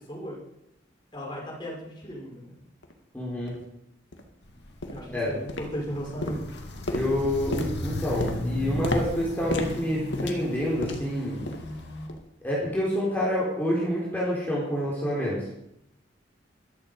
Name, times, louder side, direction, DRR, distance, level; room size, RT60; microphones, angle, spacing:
voice 1, 0.1-0.4 1.1-2.5 4.9-6.5, equal, 25° left, -3 dB, 5.3 m, -36 dB
sound 1, 2.8-2.9 3.5-3.6 4.1-4.3 4.8-5.1 5.5-5.9 6.2-11.2 11.5-11.7 12.1-12.3 12.8-12.9, left 1 dB, 80° left, 1.9 m, -34 dB
voice 2, 3.1-3.6 5.1-5.3 6.9-11.4 12.4-15.4, equal, 10° left, -6 dB, 3.8 m, -27 dB
Walk footsteps, 4.4-12.1, left 1 dB, 65° left, 2.3 m, -36 dB
14.0 x 12.5 x 5.3 m, 0.80 s
head